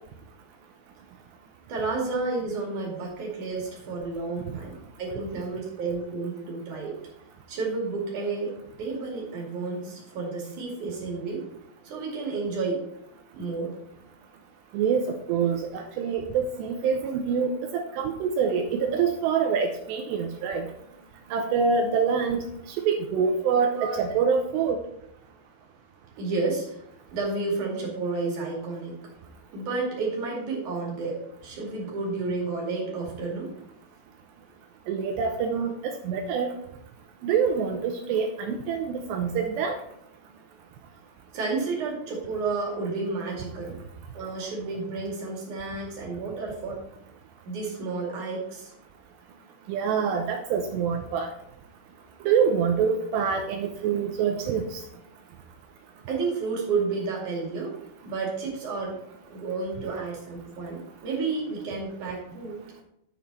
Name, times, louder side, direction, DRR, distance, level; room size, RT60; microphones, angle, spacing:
voice 1, 1.7-7.0 7.5-8.5 8.8-11.4 11.8-12.8 13.3-13.8 23.5-24.0 26.2-26.8 27.1-29.0 29.5-33.5 41.3-43.7 44.1-46.8 47.4-48.7 56.1-57.7 58.0-59.0 59.3-62.6, right 3 dB, 45° right, -2 dB, 3.1 m, -31 dB
voice 2, 14.7-20.7 21.3-22.4 22.7-24.8 34.9-36.5 37.2-39.8 49.7-51.3 52.2-54.8, right 6 dB, 85° right, 4 dB, 2.4 m, -26 dB
9.5 x 7.3 x 4.1 m, 0.77 s
omnidirectional pair, 5.8 m